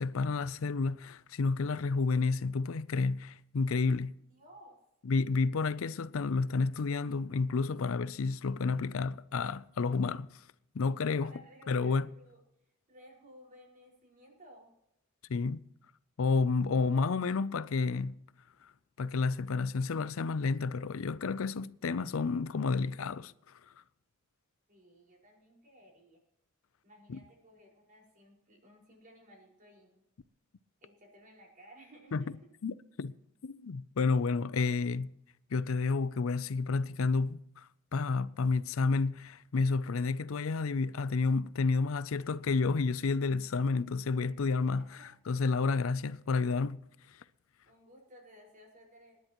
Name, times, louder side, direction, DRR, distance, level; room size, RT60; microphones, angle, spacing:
voice 1, 0.0-4.2 5.1-10.4 10.7-11.3 11.7-12.1 15.3-15.6 16.2-18.2 19.0-23.3 27.1-27.2 32.1-32.2 32.6-33.1 33.4-35.1 35.5-46.8, left 4 dB, 75° left, 0.5 m, -30 dB
voice 2, 4.3-4.8 11.0-12.4 12.9-14.7 16.7-17.0 24.7-26.2 26.8-30.0 30.8-32.3 44.8-45.1 47.7-49.2, equal, 40° right, 5.2 m, -57 dB
27.5 x 10.5 x 3.0 m
head